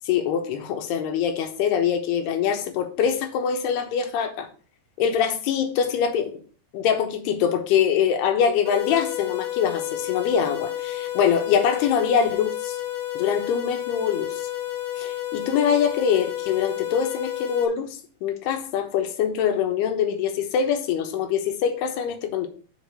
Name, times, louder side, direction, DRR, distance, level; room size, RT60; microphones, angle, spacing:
voice 1, 0.0-4.5 5.0-6.4 6.7-12.8 13.1-14.5 15.0-17.9 18.2-22.5, left 8 dB, 80° left, 3.1 m, -24 dB
sound 1, 8.7-17.7, left 13 dB, 55° left, 1.6 m, -31 dB
7.2 x 5.1 x 6.8 m
omnidirectional pair, 4.7 m